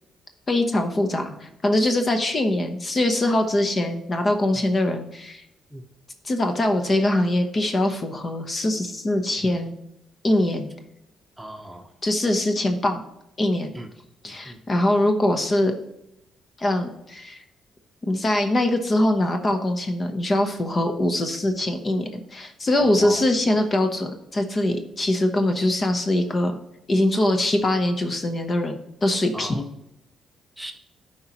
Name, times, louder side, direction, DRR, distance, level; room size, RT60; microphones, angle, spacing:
voice 1, 0.5-5.4 6.2-9.7 10.2-10.7 12.0-13.0 13.4-13.7 14.2-15.7 16.6-17.4 18.1-26.6 26.9-29.6, left 1 dB, 35° left, 5 dB, 0.9 m, -23 dB
voice 2, 11.4-11.9 13.7-13.9 14.2-14.6 22.8-23.2 29.3-29.6 30.6-30.7, right 1 dB, 5° right, 4 dB, 1.0 m, -37 dB
11.5 x 4.5 x 3.0 m, 0.85 s
cardioid pair, 90°, 0 cm